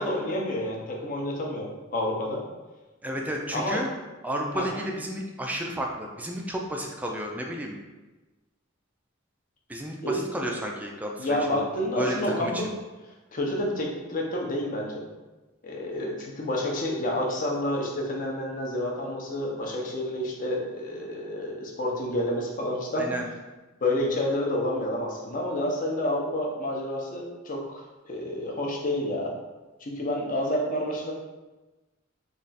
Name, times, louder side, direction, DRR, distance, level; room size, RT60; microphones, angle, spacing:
voice 1, 0.0-2.4 3.5-3.8 4.5-4.6 10.0-10.3 11.2-12.7 13.3-15.0 15.6-23.1 23.8-29.3 29.8-31.1, left 1 dB, 40° left, -1 dB, 0.6 m, -29 dB
voice 2, 3.0-3.9 4.2-7.8 9.7-11.4 12.0-12.6 23.0-23.3, equal, 10° right, 0 dB, 0.3 m, -32 dB
3.3 x 2.4 x 3.9 m, 1.2 s
head